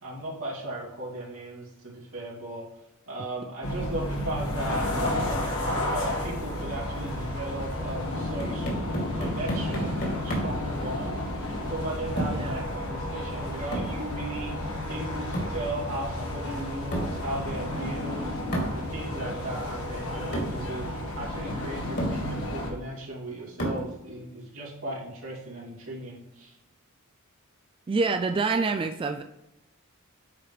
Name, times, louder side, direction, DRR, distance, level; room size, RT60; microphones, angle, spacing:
voice 1, 0.0-2.7 3.1-4.9 5.2-5.6 5.9-8.7 9.0-11.2 11.7-14.6 14.9-20.8 21.2-26.5, right 1 dB, 80° right, -5 dB, 2.7 m, -36 dB
sound 1, 3.6-22.7, left 1 dB, 80° left, 1.6 m, -32 dB
sound 2, 8.1-10.7 12.2-12.5 13.7-14.0 15.3-15.6 16.9-17.2 18.5-18.8 19.8-19.9 20.3-20.6 21.5-21.6 22.0-22.2 23.6-23.9, right 1 dB, 50° left, 2.5 m, -31 dB
voice 2, 27.9-29.2, right 4 dB, 25° right, 7 dB, 0.3 m, -26 dB
8.6 x 4.9 x 3.2 m, 0.94 s
head